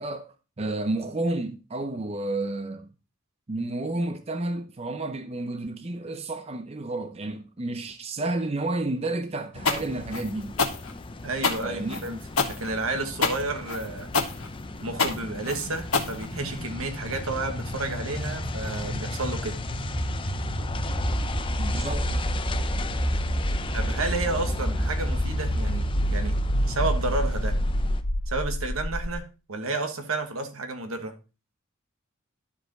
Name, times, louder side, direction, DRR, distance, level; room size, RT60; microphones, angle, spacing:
voice 1, 0.0-2.9 3.5-10.6 11.6-12.0 21.6-22.1, right 2 dB, 30° right, 0.6 m, -31 dB
sound 1, 9.5-28.0, left 3 dB, 25° left, 0.6 m, -38 dB
sound 2, 9.7-16.7, left 4 dB, 85° left, 1.3 m, -27 dB
voice 2, 11.2-12.2 12.5-14.1 14.8-19.6 23.7-26.4 26.7-27.6 28.3-31.2, right 3 dB, 80° right, 1.3 m, -31 dB
sound 3, 13.5-29.2, equal, 60° left, 2.0 m, -29 dB
11.5 x 4.9 x 3.8 m
head